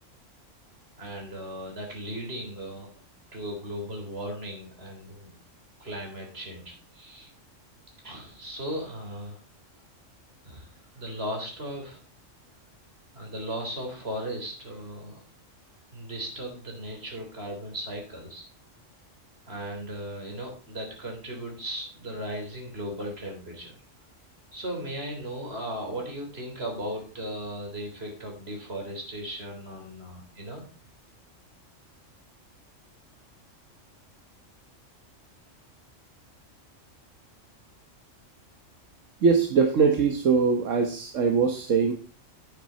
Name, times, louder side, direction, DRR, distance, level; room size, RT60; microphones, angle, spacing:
voice 1, 1.0-2.9 3.3-5.4 5.8-7.3 8.0-9.4 10.4-12.0 13.1-15.2 15.9-18.4 19.5-23.8 24.5-30.6, equal, 50° right, 1 dB, 3.9 m, -37 dB
voice 2, 39.2-41.9, right 5 dB, 80° right, 5 dB, 1.5 m, -22 dB
9.4 x 9.3 x 4.2 m, 0.37 s
omnidirectional pair, 1.3 m